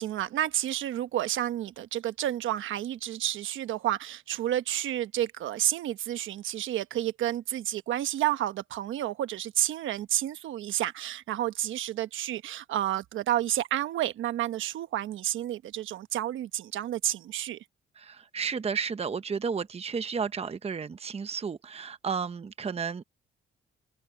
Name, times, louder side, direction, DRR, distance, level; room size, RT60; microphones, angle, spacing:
voice 1, 0.0-17.6, right 12 dB, 80° right, 1.1 m, -30 dB
voice 2, 18.0-23.0, right 6 dB, 30° right, 0.9 m, -32 dB
open air
cardioid pair, 90°, 20 cm